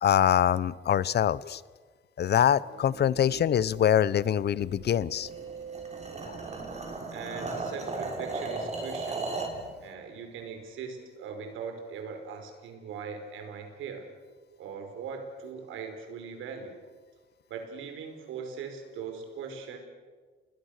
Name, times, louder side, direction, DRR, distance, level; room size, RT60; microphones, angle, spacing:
voice 1, 0.0-1.6 2.2-5.3 6.3-6.4, left 10 dB, 55° left, 20 dB, 0.8 m, -24 dB
sound 1, 2.4-7.0, right 7 dB, 55° right, 1.7 m, -47 dB
sound 2, 5.2-9.6, right 3 dB, 35° right, 5.7 m, -35 dB
voice 2, 7.1-9.3 9.8-14.1 14.6-16.8 17.5-19.8, right 6 dB, 85° right, 5 dB, 5.0 m, -40 dB
30.0 x 20.5 x 6.7 m, 1.5 s
cardioid pair, 90°, 20 cm